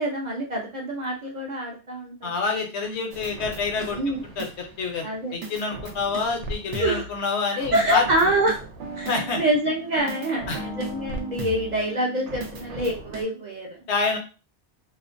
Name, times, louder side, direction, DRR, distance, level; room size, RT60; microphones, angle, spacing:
voice 1, 0.0-2.3 3.9-4.2 5.0-5.4 6.8-7.1 7.7-8.6 9.0-13.8, right 1 dB, 50° right, -1 dB, 0.5 m, -26 dB
voice 2, 2.2-4.0 4.4-8.0 9.1-9.4 10.5-10.6 13.9-14.2, left 4 dB, 75° left, 3 dB, 0.9 m, -27 dB
sound 1, 3.1-4.9 5.4-7.2 7.6-13.2, right 2 dB, 85° right, 0.9 m, -37 dB
2.4 x 2.1 x 2.5 m, 0.33 s
omnidirectional pair, 1.2 m